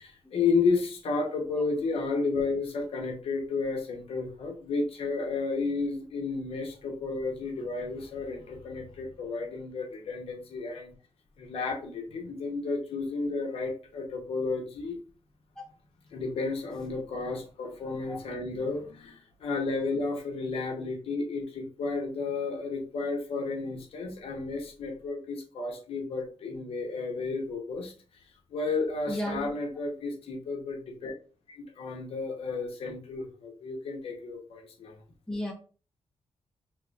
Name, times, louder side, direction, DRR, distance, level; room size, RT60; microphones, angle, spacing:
voice 1, 0.0-10.9 11.4-15.0 16.1-27.9 28.5-31.1 31.5-35.0, left 4 dB, 70° left, 2 dB, 0.9 m, -32 dB
voice 2, 29.1-29.5 35.3-35.5, left 1 dB, 5° left, -1 dB, 1.0 m, -33 dB
3.8 x 2.9 x 2.4 m, 0.38 s
wide cardioid pair, 150°, 10 cm